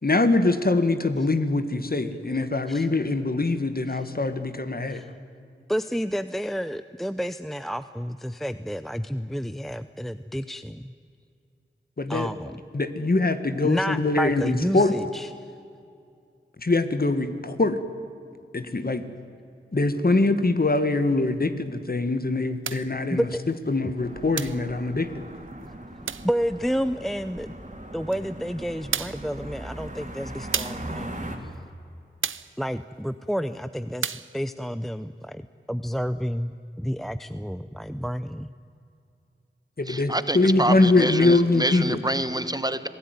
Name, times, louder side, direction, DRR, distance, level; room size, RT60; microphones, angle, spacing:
voice 1, 0.0-5.0 12.0-12.3 12.7-14.9 16.6-17.8 18.5-19.0 19.7-23.3 23.7-25.2 39.8-42.0, left 2 dB, 50° left, 10 dB, 1.8 m, -23 dB
voice 2, 5.7-10.9 12.1-12.6 13.6-15.3 23.1-23.4 26.2-27.5 27.9-31.5 32.6-35.4 35.7-38.5, equal, ahead, 12 dB, 0.7 m, -30 dB
sound 1, 22.6-22.9 24.4-24.7 26.1-26.3 28.1-28.2 28.9-29.3 30.5-30.9 32.2-32.6 34.0-34.3, right 6 dB, 90° right, 0.6 m, -31 dB
sound 2, 24.0-31.4, right 1 dB, 40° right, 3.5 m, -39 dB
voice 3, 39.9-42.9, right 1 dB, 20° right, 12 dB, 1.2 m, -27 dB
26.5 x 17.5 x 9.6 m, 2.5 s
wide cardioid pair, 55°, 20 cm